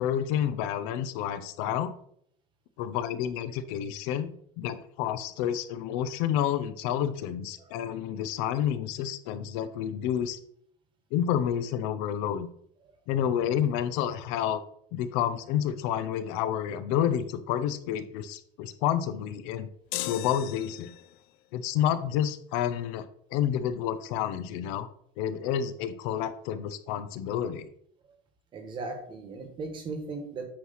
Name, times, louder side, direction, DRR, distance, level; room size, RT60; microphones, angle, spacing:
voice 1, 0.0-1.9 2.8-4.3 4.6-10.4 11.1-12.5 13.1-14.6 14.9-19.7 20.1-20.9 21.5-23.0 23.3-24.9 25.2-27.7, left 10 dB, 85° left, 12 dB, 0.8 m, -29 dB
sound 1, 19.9-21.2, left 16 dB, 65° left, 0.5 m, -36 dB
voice 2, 28.5-30.4, right 3 dB, 30° right, 6 dB, 1.3 m, -37 dB
8.8 x 3.1 x 5.7 m, 0.66 s
cardioid pair, 170°, 16 cm